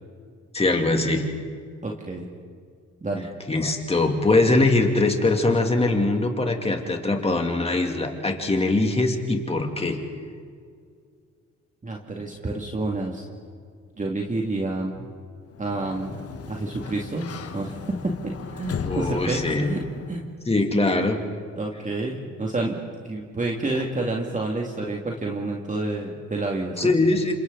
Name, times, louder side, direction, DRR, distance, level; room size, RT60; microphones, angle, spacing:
voice 1, 0.5-1.2 3.5-10.0 18.8-19.7 20.5-21.2 26.8-27.3, left 2 dB, 20° left, 3 dB, 2.9 m, -22 dB
voice 2, 1.8-2.3 3.0-3.3 11.8-13.2 14.0-15.0 15.6-16.1 16.5-17.3 17.5-17.7 18.2-19.8 20.1-20.2 21.6-22.8 23.0-26.9, right 2 dB, 25° right, -1 dB, 2.4 m, -29 dB
Sliding door, 15.5-20.3, left 6 dB, 50° left, 1.5 m, -36 dB
29.5 x 26.5 x 4.1 m, 2.1 s
cardioid pair, 90°, 30 cm